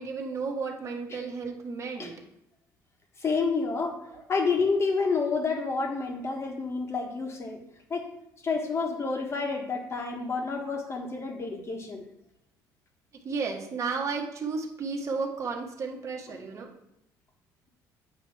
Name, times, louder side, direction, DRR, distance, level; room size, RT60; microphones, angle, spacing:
voice 1, 0.0-2.1 4.1-4.2 13.2-16.7, right 4 dB, 40° right, 0 dB, 1.2 m, -33 dB
voice 2, 3.2-4.0 4.3-7.6 7.9-8.1 8.4-12.0, left 4 dB, 35° left, 3 dB, 1.3 m, -29 dB
8.2 x 3.0 x 5.8 m, 0.81 s
cardioid pair, 95°, 8 cm